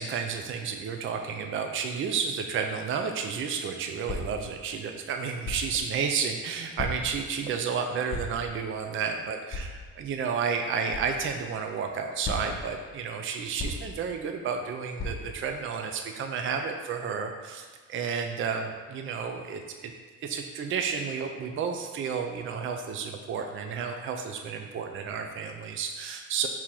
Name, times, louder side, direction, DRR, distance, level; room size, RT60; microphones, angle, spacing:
voice 1, 0.0-19.9 20.2-26.5, right 6 dB, 45° right, 4 dB, 0.4 m, -31 dB
sound 1, 4.1-4.4 5.4-5.8 6.8-7.2 8.1-8.5 9.5-9.8 10.9-11.1 12.2-12.7 13.6-14.0 15.0-15.4, left 2 dB, 35° left, 0.8 m, -35 dB
3.7 x 2.9 x 4.5 m, 1.4 s
cardioid pair, 90°, 30 cm